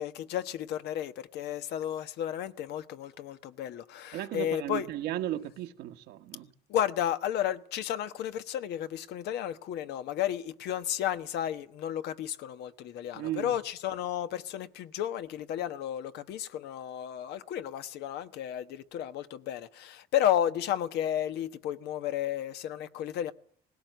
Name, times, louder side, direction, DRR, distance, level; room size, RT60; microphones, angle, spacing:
voice 1, 0.0-4.9 6.7-23.3, left 10 dB, 80° left, 1.3 m, -32 dB
voice 2, 4.1-6.5 13.1-13.5, right 13 dB, 85° right, 1.5 m, -35 dB
19.0 x 17.0 x 9.2 m
cardioid pair, 110°, 17 cm